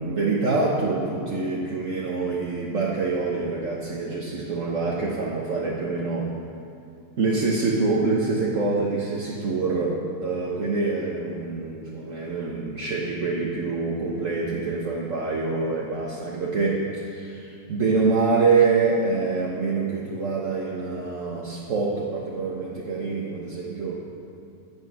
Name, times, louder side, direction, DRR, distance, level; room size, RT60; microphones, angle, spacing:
voice 1, 0.0-6.3 7.2-24.0, right 4 dB, 55° right, -3 dB, 1.5 m, -25 dB
14.0 x 8.7 x 6.1 m, 2.5 s
omnidirectional pair, 1.7 m